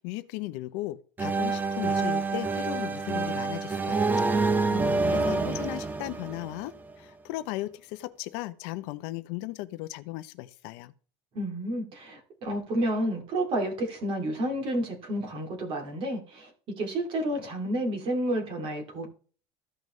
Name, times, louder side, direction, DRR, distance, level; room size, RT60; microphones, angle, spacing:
voice 1, 0.0-4.3 5.1-10.9, left 17 dB, 65° left, 0.7 m, -37 dB
sound 1, 1.2-6.9, right 3 dB, 15° right, 0.5 m, -27 dB
voice 2, 4.7-5.6 11.3-19.1, right 1 dB, 40° right, 2.8 m, -31 dB
14.5 x 5.3 x 3.2 m
cardioid pair, 160°, 14 cm